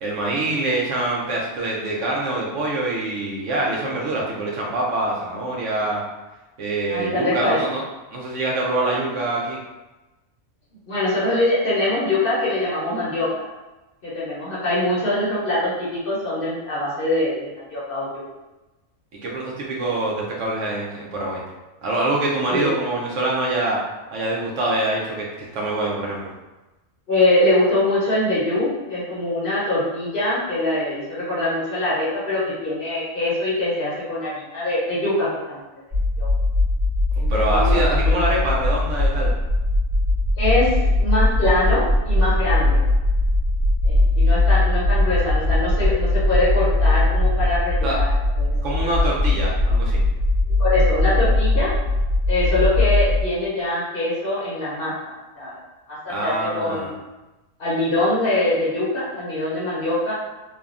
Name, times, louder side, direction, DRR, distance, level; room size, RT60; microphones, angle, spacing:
voice 1, 0.0-6.0 6.6-7.8 8.1-9.6 19.2-21.4 21.8-23.8 24.1-26.3 37.3-39.3 47.8-48.0 48.6-50.0 56.1-56.9, right 2 dB, 65° right, -3 dB, 0.9 m, -25 dB
voice 2, 6.9-7.6 10.9-13.3 14.0-18.2 22.5-22.7 27.1-35.6 36.2-36.3 37.2-38.1 40.4-42.8 43.8-48.6 50.5-51.7 52.3-55.5 55.9-56.9 57.6-60.1, left 1 dB, 50° left, -8 dB, 0.8 m, -23 dB
sound 1, 35.9-53.2, left 2 dB, 45° right, 1.7 m, -20 dB
3.3 x 2.2 x 2.4 m, 1.1 s
omnidirectional pair, 1.4 m